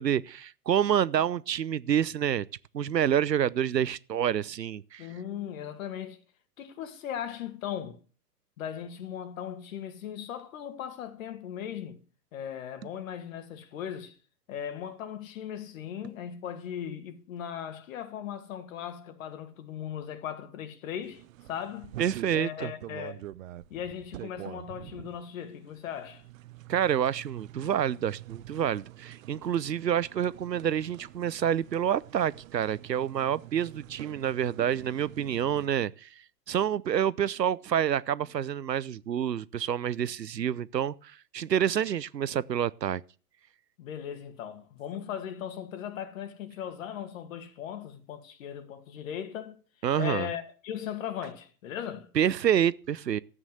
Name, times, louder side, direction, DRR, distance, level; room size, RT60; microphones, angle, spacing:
voice 1, 0.0-2.5 2.7-5.1 22.0-22.7 26.7-36.1 36.5-43.0 49.8-50.3 52.1-53.2, right 9 dB, 90° right, 0.7 m, -28 dB
voice 2, 5.0-6.2 6.6-8.0 8.6-12.0 12.3-14.2 14.5-21.2 21.5-21.9 22.3-23.2 23.7-26.2 43.8-49.6 49.9-52.1, left 9 dB, 55° left, 2.4 m, -38 dB
sound 1, 21.0-35.7, right 14 dB, 55° right, 0.8 m, -46 dB
13.5 x 9.0 x 7.8 m
figure-of-eight pair, 110°, 48 cm